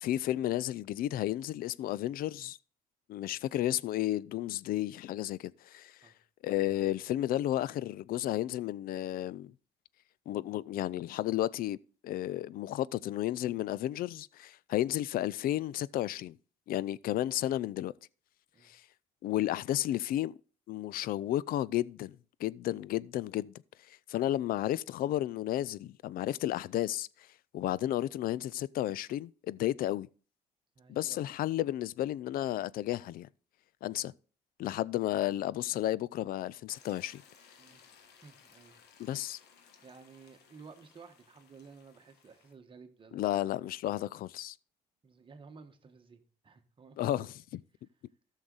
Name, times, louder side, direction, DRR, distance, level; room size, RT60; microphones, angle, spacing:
voice 1, 0.0-2.6 3.1-6.1 6.4-9.5 10.3-11.8 12.0-16.4 16.7-17.9 18.6-18.8 19.2-20.3 20.7-23.5 23.9-27.1 27.5-30.1 30.9-33.3 33.8-34.1 34.6-37.2 39.0-39.4 43.1-44.6 47.0-47.3, left 13 dB, 60° left, 0.4 m, -32 dB
voice 2, 30.7-31.2 37.6-37.8 38.2-39.2 39.8-43.7 45.0-47.3, right 5 dB, 30° right, 1.3 m, -55 dB
sound 1, 36.7-42.5, left 6 dB, 75° left, 1.5 m, -61 dB
13.5 x 6.4 x 4.0 m
cardioid pair, 110°, 17 cm